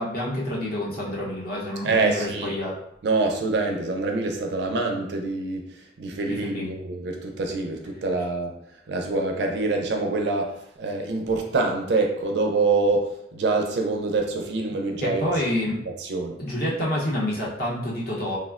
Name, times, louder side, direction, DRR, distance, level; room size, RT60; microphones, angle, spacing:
voice 1, 0.0-2.7 6.4-6.7 15.0-15.8 16.4-18.4, left 1 dB, 50° left, -5 dB, 0.8 m, -28 dB
voice 2, 1.8-2.6 3.0-8.6 8.9-15.3 16.0-16.4, right 3 dB, 65° right, 2 dB, 0.4 m, -25 dB
3.2 x 2.1 x 2.4 m, 0.75 s
head